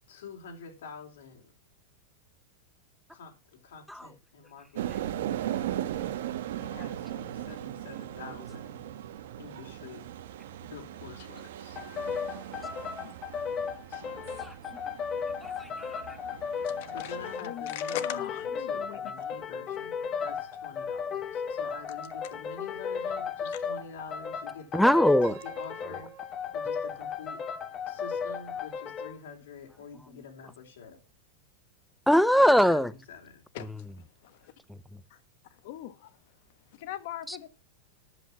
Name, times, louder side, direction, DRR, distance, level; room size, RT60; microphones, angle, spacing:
voice 1, 0.1-1.4 3.1-3.3 3.6-6.2 6.6-8.8 9.4-10.1 10.6-11.8 12.7-12.8 13.9-14.3 16.9-18.3 18.7-25.1 25.4-27.4 27.9-31.0 32.3-32.4 32.7-33.4, left 5 dB, 85° left, 3.6 m, -47 dB
sound 1, 4.8-17.4, right 12 dB, 65° right, 1.2 m, -38 dB
sound 2, 11.7-29.2, left 6 dB, 20° left, 1.0 m, -35 dB
voice 2, 15.4-16.2 24.7-25.4 25.8-26.0 30.1-30.2 32.1-32.9 34.7-34.8 37.3-37.5, equal, ahead, 0.5 m, -23 dB
voice 3, 16.6-19.2 23.5-23.6 33.5-33.7 34.0-34.5 35.1-35.2 35.6-36.1 36.7-37.5, left 13 dB, 50° left, 1.2 m, -41 dB
Piano, 25.2-28.2, right 9 dB, 40° right, 1.9 m, -51 dB
11.0 x 7.7 x 5.9 m
supercardioid pair, 175°, 0 cm